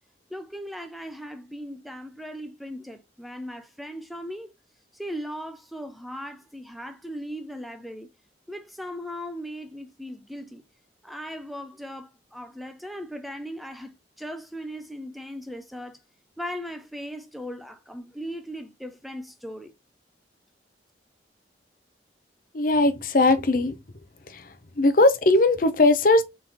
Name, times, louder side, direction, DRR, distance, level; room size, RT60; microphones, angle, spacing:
voice 1, 0.3-4.5 4.9-8.1 8.5-10.6 11.0-16.0 16.4-19.7, equal, ahead, 0.3 m, -38 dB
voice 2, 22.5-23.8 24.3-26.2, left 2 dB, 50° left, 0.6 m, -20 dB
3.7 x 3.1 x 3.6 m
head